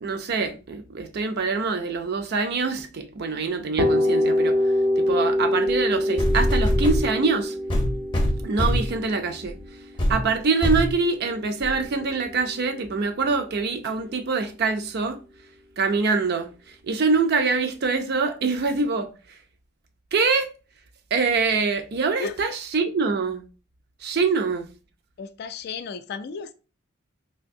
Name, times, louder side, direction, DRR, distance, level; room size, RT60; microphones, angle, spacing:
voice 1, 0.0-4.6 5.0-7.5 8.4-9.6 10.1-15.2 15.8-16.5 16.8-19.1 20.1-20.5 21.1-23.4 24.0-24.7, right 4 dB, 55° right, 0.4 m, -24 dB
sound 1, 3.8-11.5, left 1 dB, 90° right, 0.8 m, -25 dB
sound 2, 5.7-5.8 6.2-7.1 7.7-9.0 9.5-9.6 10.0-10.2 10.6-10.9 11.6-11.7, equal, 25° left, 0.6 m, -22 dB
voice 2, 25.2-26.5, left 5 dB, 55° left, 0.3 m, -34 dB
3.4 x 2.6 x 2.6 m
head